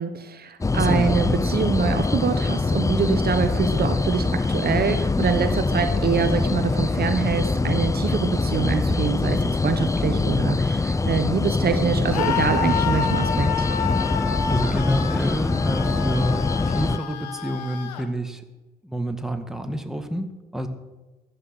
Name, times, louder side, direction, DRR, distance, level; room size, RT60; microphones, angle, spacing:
voice 1, 0.0-13.7, right 6 dB, 50° right, 9 dB, 1.2 m, -25 dB
sound 1, 0.6-17.0, left 3 dB, 15° left, 0.6 m, -23 dB
voice 2, 0.7-1.2 14.5-18.4 18.8-20.7, equal, ahead, 6 dB, 1.8 m, -28 dB
Screaming, 12.1-18.1, left 7 dB, 85° left, 1.0 m, -29 dB
13.5 x 9.5 x 6.2 m, 1.2 s
hypercardioid pair, 45°, 21 cm